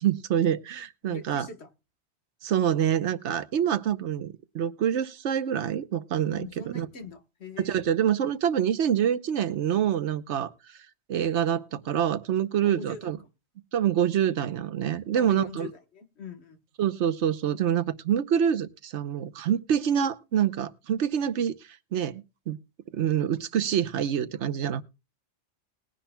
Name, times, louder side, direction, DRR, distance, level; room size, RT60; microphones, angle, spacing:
voice 1, 0.0-1.5 2.4-6.9 7.6-10.5 11.1-13.2 13.7-15.7 16.8-22.6 22.9-24.8, right 9 dB, 85° right, 1.1 m, -26 dB
voice 2, 1.1-1.7 6.3-7.7 12.6-13.1 15.1-16.6, left 5 dB, 70° left, 1.6 m, -42 dB
20.0 x 10.0 x 2.2 m
omnidirectional pair, 1.2 m